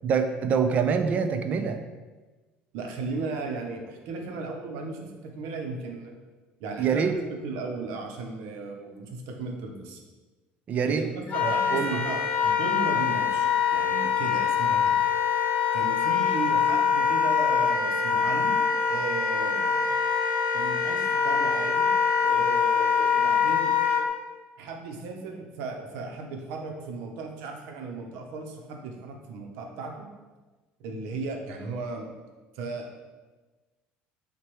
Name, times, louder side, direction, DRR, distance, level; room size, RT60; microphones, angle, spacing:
voice 1, 0.0-1.8 6.8-7.1 10.7-11.1 11.4-12.0, right 6 dB, 40° right, 8 dB, 0.4 m, -25 dB
voice 2, 2.7-6.2 6.6-10.0 10.9-13.5 13.7-15.0 15.7-18.6 18.9-20.0 20.5-21.9 22.2-23.7 24.6-30.1 30.8-32.1 32.5-33.0, right 3 dB, 80° right, 2 dB, 0.6 m, -36 dB
Wind instrument woodwind instrument, 11.3-24.0, left 7 dB, 45° left, 0.7 m, -24 dB
5.9 x 2.2 x 3.1 m, 1.2 s
cardioid pair, 120°, 4 cm